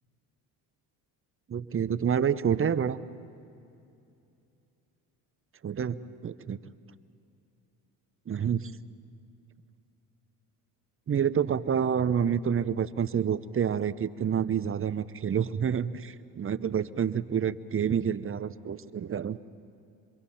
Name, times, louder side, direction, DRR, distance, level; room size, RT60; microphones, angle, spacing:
voice 1, 1.5-3.0 5.6-6.6 8.3-8.7 11.1-19.4, right 8 dB, 30° right, 15 dB, 0.7 m, -28 dB
26.5 x 22.5 x 5.8 m, 2.6 s
supercardioid pair, 80°, 43 cm